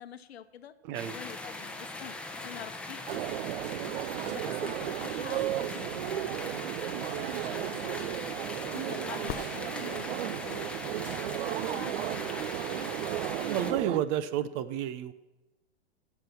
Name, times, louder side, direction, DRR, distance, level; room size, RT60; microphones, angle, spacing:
voice 1, 0.0-0.8 1.1-4.0 4.2-8.2 8.5-10.8 11.6-12.2, left 9 dB, 70° left, 12 dB, 1.0 m, -47 dB
voice 2, 0.8-1.2 4.4-4.5 13.3-15.1, right 10 dB, 35° right, 14 dB, 0.9 m, -31 dB
sound 1, 0.9-13.7, left 2 dB, 5° left, 1.2 m, -40 dB
sound 2, 3.1-14.0, right 13 dB, 60° right, 0.5 m, -34 dB
sound 3, 9.3-10.4 14.3-14.4, left 11 dB, 30° left, 0.8 m, -41 dB
17.5 x 6.0 x 6.0 m, 1.0 s
hypercardioid pair, 105°, 32 cm